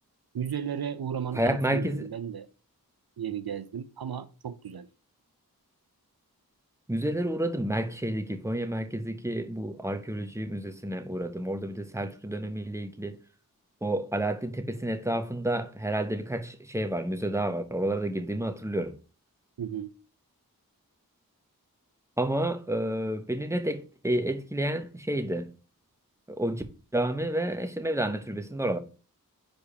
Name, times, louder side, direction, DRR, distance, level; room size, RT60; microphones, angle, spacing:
voice 1, 0.3-2.5 3.2-4.9 19.6-19.9, right 8 dB, 75° right, 0.6 m, -34 dB
voice 2, 1.3-2.1 6.9-13.2 13.8-18.9 22.2-25.5 26.3-26.6 26.9-28.8, right 1 dB, 10° right, 1.1 m, -30 dB
5.1 x 4.7 x 5.6 m
wide cardioid pair, 40°, 37 cm